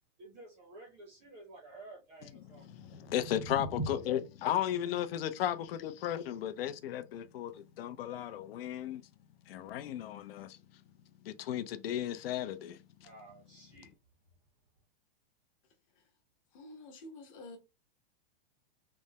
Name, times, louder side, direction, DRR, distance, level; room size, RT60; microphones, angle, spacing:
voice 1, 0.2-2.7 13.0-13.9, right 2 dB, 20° right, 0.5 m, -52 dB
voice 2, 2.5-9.0 9.5-10.6 11.2-12.8, left 11 dB, 80° left, 0.5 m, -35 dB
sound 1, 2.5-8.7, right 1 dB, 55° left, 1.1 m, -45 dB
voice 3, 16.5-17.6, left 2 dB, 35° left, 0.8 m, -49 dB
3.3 x 2.0 x 2.7 m
supercardioid pair, 170°, 29 cm